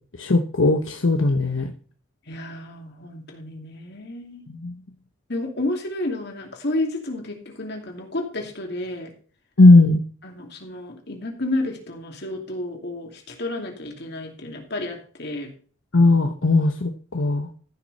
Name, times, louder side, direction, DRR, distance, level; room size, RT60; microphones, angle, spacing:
voice 1, 0.2-1.7 4.5-4.7 9.6-10.0 15.9-17.5, left 2 dB, 70° left, 5 dB, 1.0 m, -17 dB
voice 2, 2.3-4.5 5.3-9.1 10.2-15.5, left 2 dB, 55° left, 3 dB, 2.7 m, -31 dB
14.5 x 6.3 x 4.2 m, 0.41 s
head